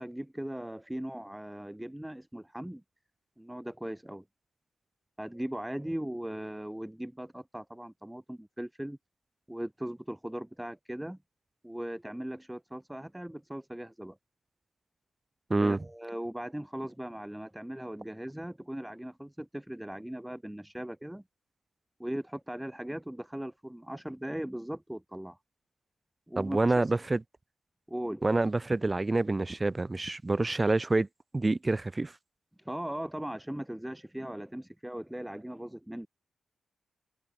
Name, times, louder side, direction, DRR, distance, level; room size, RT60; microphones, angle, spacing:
voice 1, 0.0-2.8 3.4-4.2 5.2-9.0 9.5-11.2 11.6-14.2 15.6-21.2 22.0-25.4 26.3-26.7 27.9-28.2 32.6-36.1, right 1 dB, 5° right, 0.6 m, -39 dB
voice 2, 15.5-15.8 26.4-27.2 28.2-31.1 31.3-32.1, right 2 dB, 25° right, 0.9 m, -27 dB
supercardioid pair, 55°, 0 cm